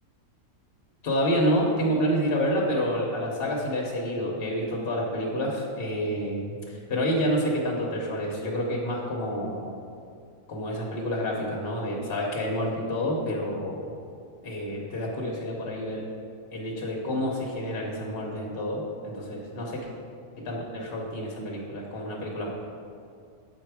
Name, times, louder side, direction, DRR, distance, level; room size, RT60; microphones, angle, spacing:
voice 1, 1.0-9.8 10.5-13.9 14.4-16.0 16.5-19.9 20.4-22.5, equal, 45° left, -2 dB, 1.1 m, -28 dB
7.4 x 4.6 x 4.7 m, 2.4 s
omnidirectional pair, 1.5 m